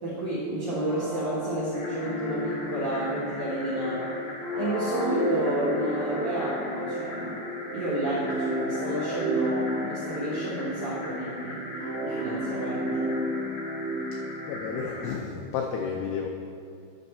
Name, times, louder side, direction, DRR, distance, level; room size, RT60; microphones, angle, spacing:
voice 1, 0.0-4.2 4.5-7.4 7.7-11.6 12.0-13.1, right 1 dB, 70° right, -8 dB, 1.8 m, -31 dB
sound 1, 0.7-15.3, equal, 90° right, 1.3 m, -32 dB
sound 2, 1.7-15.1, left 1 dB, 70° left, 1.9 m, -40 dB
voice 2, 14.5-16.3, left 6 dB, 85° left, 2 dB, 2.3 m, -32 dB
9.9 x 5.9 x 4.1 m, 2.4 s
omnidirectional pair, 5.3 m